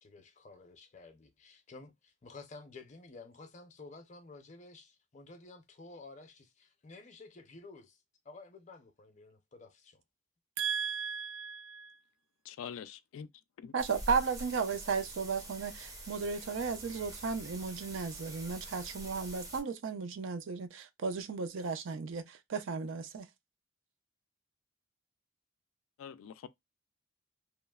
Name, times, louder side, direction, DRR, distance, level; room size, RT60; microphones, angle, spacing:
voice 1, 0.0-8.0 8.2-10.0, left 3 dB, 35° left, 0.5 m, -52 dB
voice 2, 10.6-12.0 13.7-23.3, right 5 dB, 70° right, 0.4 m, -35 dB
voice 3, 12.4-13.3 13.6-13.7 26.0-26.5, left 7 dB, 85° left, 0.3 m, -44 dB
sound 1, 13.8-19.6, right 1 dB, 15° right, 0.5 m, -46 dB
3.0 x 2.0 x 2.2 m
head